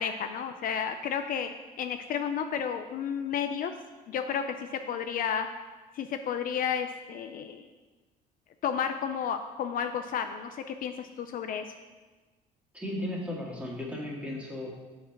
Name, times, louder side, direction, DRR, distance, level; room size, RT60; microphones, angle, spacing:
voice 1, 0.0-1.5 1.8-3.7 4.1-5.5 5.9-7.7 8.6-11.6, left 7 dB, 55° left, 7 dB, 0.4 m, -32 dB
voice 2, 12.7-14.7, left 1 dB, 5° right, -3 dB, 1.9 m, -35 dB
7.2 x 4.2 x 5.8 m, 1.3 s
cardioid pair, 110°, 17 cm